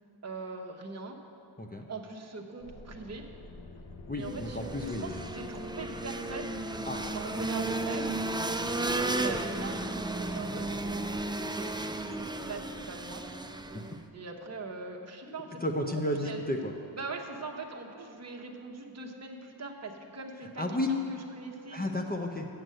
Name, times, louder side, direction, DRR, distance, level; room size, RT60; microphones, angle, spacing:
voice 1, 0.2-1.2 1.9-3.2 4.1-6.6 7.1-8.2 9.0-10.8 11.4-13.2 14.1-15.9 16.2-16.4 16.9-21.8, right 3 dB, 35° right, 0 dB, 1.0 m, -41 dB
sound 1, 2.6-11.1, left 4 dB, 55° left, 0.8 m, -48 dB
voice 2, 4.1-5.2 6.9-7.1 13.7-13.8 15.3-16.7 20.6-20.9 21.7-22.5, left 1 dB, 20° left, 2 dB, 0.7 m, -33 dB
sound 2, 4.2-14.0, right 2 dB, 10° right, 0.4 m, -34 dB
7.9 x 6.7 x 7.7 m, 3.0 s
wide cardioid pair, 65°, 47 cm